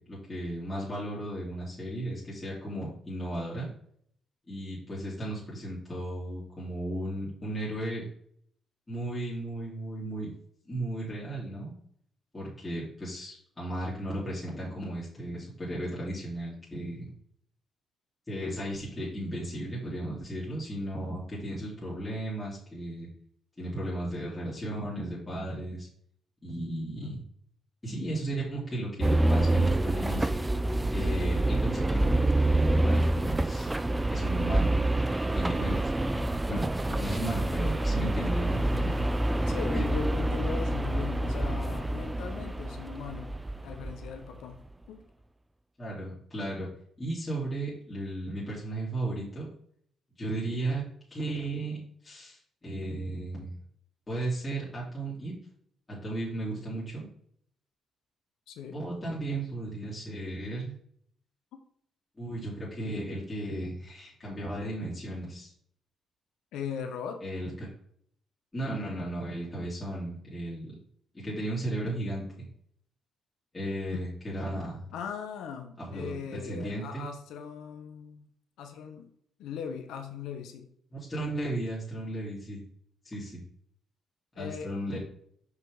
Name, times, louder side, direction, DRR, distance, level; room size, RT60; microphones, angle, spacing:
voice 1, 0.1-3.7 4.5-8.0 8.9-10.3 10.6-11.8 12.3-17.1 18.3-23.1 23.6-25.9 26.4-27.2 27.8-30.4 30.9-33.7 34.1-34.9 35.3-35.9 36.5-36.7 37.0-39.1 39.7-39.8 45.8-46.7 47.0-49.5 50.2-50.8 51.1-51.8 52.0-53.5 54.1-55.3 55.9-57.1 58.7-60.8 62.2-65.5 67.2-67.7 68.5-70.8 71.1-72.2 73.5-74.9 75.8-77.1 80.9-82.6 83.0-83.4 84.4-85.0, right 1 dB, 20° left, -7 dB, 3.0 m, -35 dB
sound 1, 29.0-44.2, right 1 dB, 15° right, 0.5 m, -27 dB
voice 2, 39.5-43.4 43.6-44.6 44.9-45.0 58.5-58.8 61.5-61.6 66.5-67.2 73.9-74.0 74.9-78.3 78.6-79.1 79.4-80.7 84.3-84.7, left 7 dB, 85° left, 5 dB, 1.0 m, -39 dB
5.8 x 5.7 x 3.6 m, 0.65 s
cardioid pair, 90°, 0 cm